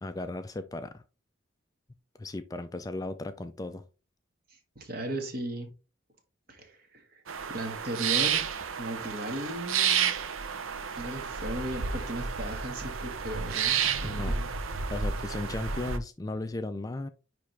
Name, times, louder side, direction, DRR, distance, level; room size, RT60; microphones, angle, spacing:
voice 1, 0.0-1.0 2.2-3.8 13.8-14.4 14.9-17.1, left 2 dB, 20° left, 0.3 m, -36 dB
voice 2, 4.7-5.7 6.5-7.2 7.5-8.4 8.8-10.1 11.0-14.5, right 1 dB, 45° right, 1.7 m, -36 dB
sound 1, 7.3-16.0, right 7 dB, 85° right, 0.7 m, -31 dB
9.8 x 3.3 x 3.3 m
head